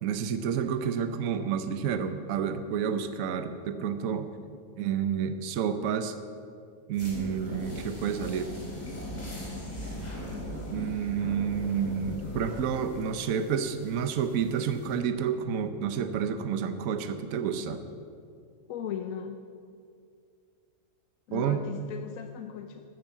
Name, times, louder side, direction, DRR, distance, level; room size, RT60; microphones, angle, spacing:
voice 1, 0.0-4.3 4.8-6.1 6.9-8.6 10.7-17.8 21.3-21.6, right 7 dB, 70° right, 9 dB, 1.1 m, -30 dB
sound 1, 6.9-15.0, left 1 dB, 30° left, 3.7 m, -39 dB
voice 2, 18.7-19.4 21.3-22.8, left 8 dB, 70° left, 7 dB, 1.0 m, -37 dB
13.5 x 9.5 x 7.3 m, 2.3 s
omnidirectional pair, 1.5 m